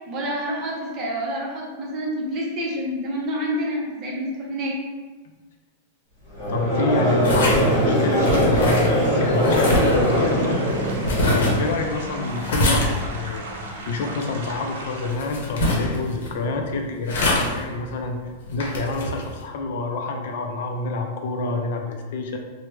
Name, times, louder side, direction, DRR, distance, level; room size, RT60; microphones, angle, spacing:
voice 1, 0.1-4.8, equal, 25° right, -3 dB, 0.6 m, -28 dB
Conversation / Crowd, 6.3-11.6, equal, 35° left, 1.1 m, -21 dB
voice 2, 6.5-10.5 11.0-13.5 13.9-18.2 18.5-22.4, left 3 dB, 55° left, 3 dB, 0.3 m, -28 dB
sound 1, 7.2-19.4, left 1 dB, 75° left, 0.7 m, -26 dB
sound 2, 9.8-15.2, right 2 dB, 80° right, 0.5 m, -37 dB
3.2 x 2.0 x 3.1 m, 1.3 s
supercardioid pair, 175°, 0 cm